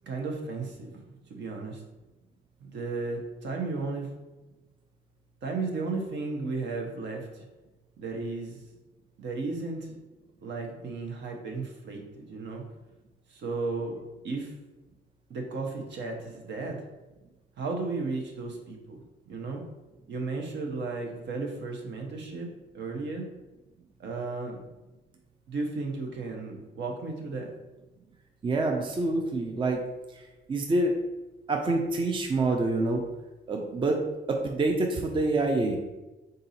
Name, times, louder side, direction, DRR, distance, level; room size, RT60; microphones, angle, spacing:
voice 1, 0.0-1.0 1.3-1.8 2.6-4.1 5.4-7.4 8.0-8.6 9.2-10.0 10.4-12.6 13.3-14.0 14.2-14.5 15.3-16.8 17.6-19.0 19.3-19.6 20.1-22.5 22.7-23.2 24.0-24.6 25.5-27.5, right 3 dB, 65° right, 2 dB, 0.9 m, -34 dB
voice 2, 28.4-29.8 30.1-30.2 30.5-30.9 31.5-33.0 33.5-34.0 34.3-35.8, right 2 dB, 25° right, 3 dB, 0.5 m, -26 dB
3.8 x 2.7 x 4.1 m, 1.1 s
cardioid pair, 90°, 20 cm